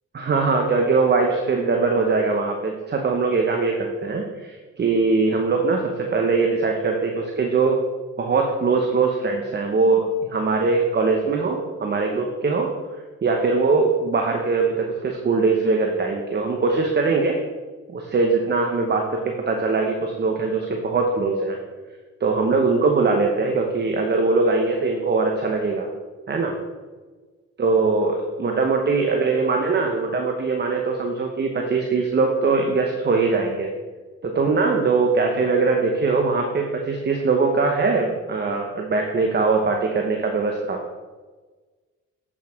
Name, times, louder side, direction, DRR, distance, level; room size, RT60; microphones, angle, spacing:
voice 1, 0.1-7.8 8.2-12.7 13.2-17.4 17.9-21.6 22.2-25.9 26.3-26.6 27.6-33.7 34.3-40.8, right 4 dB, 35° right, 2 dB, 1.0 m, -21 dB
8.4 x 6.1 x 4.5 m, 1.3 s
cardioid pair, 90°, 30 cm